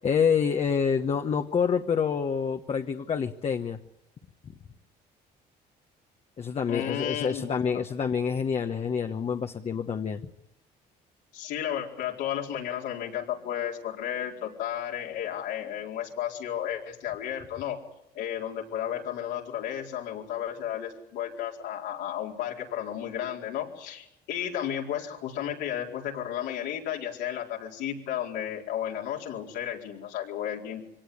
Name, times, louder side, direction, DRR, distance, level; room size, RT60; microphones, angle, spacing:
voice 1, 0.0-3.8 6.4-10.2, left 6 dB, 40° left, 5 dB, 1.1 m, -27 dB
voice 2, 6.7-7.8 11.3-17.8 18.1-30.9, left 10 dB, 90° left, -1 dB, 4.5 m, -33 dB
24.0 x 18.0 x 9.7 m, 0.82 s
cardioid pair, 110°, 17 cm